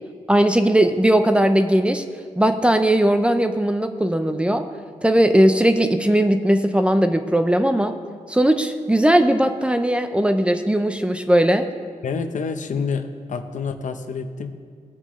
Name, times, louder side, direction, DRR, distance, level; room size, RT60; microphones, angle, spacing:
voice 1, 0.3-2.0 2.4-4.7 5.0-7.9 8.3-11.6, right 1 dB, 10° right, 7 dB, 0.5 m, -18 dB
voice 2, 12.0-14.5, left 5 dB, 70° left, 8 dB, 0.7 m, -28 dB
18.0 x 8.8 x 3.1 m, 2.1 s
wide cardioid pair, 135°, 13 cm